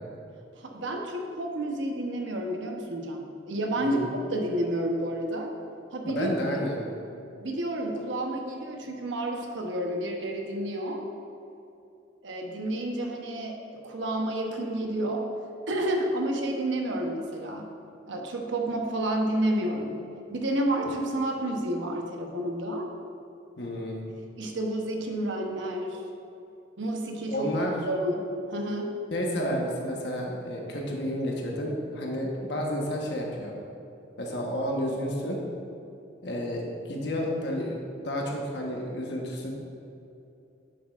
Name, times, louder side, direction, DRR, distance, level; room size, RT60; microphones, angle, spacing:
voice 1, 0.5-4.0 4.3-5.5 5.9-6.3 6.6-6.7 7.4-11.0 12.2-15.3 15.7-17.6 18.1-20.0 20.3-22.8 24.4-26.0 26.8-27.5 27.9-28.9, right 1 dB, 85° right, 2 dB, 0.9 m, -30 dB
voice 2, 6.0-6.8 23.6-24.0 27.3-27.7 29.1-33.6 34.2-35.4 36.2-37.8 38.0-39.5, equal, 65° left, -1 dB, 1.2 m, -31 dB
9.3 x 7.2 x 2.5 m, 2.7 s
head